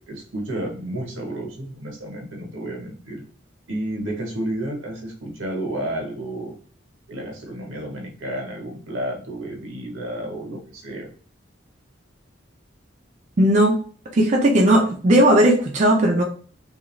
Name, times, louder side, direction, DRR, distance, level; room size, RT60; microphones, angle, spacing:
voice 1, 0.0-3.2 3.7-6.5 7.1-11.1, right 1 dB, 90° right, 0 dB, 1.0 m, -31 dB
voice 2, 13.4-13.8 14.1-16.2, right 1 dB, 35° right, -1 dB, 0.4 m, -16 dB
2.4 x 2.4 x 3.0 m, 0.41 s
head